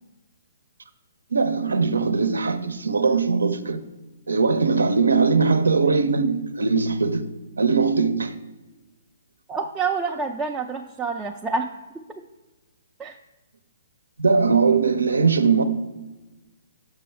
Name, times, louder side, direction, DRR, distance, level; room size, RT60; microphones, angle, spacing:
voice 1, 1.3-3.8 4.3-8.3 14.2-15.6, right 4 dB, 85° right, 0.6 m, -20 dB
voice 2, 9.5-11.7 13.0-13.2, right 4 dB, 10° right, 0.3 m, -27 dB
6.2 x 5.4 x 4.4 m
hypercardioid pair, 140°, 0 cm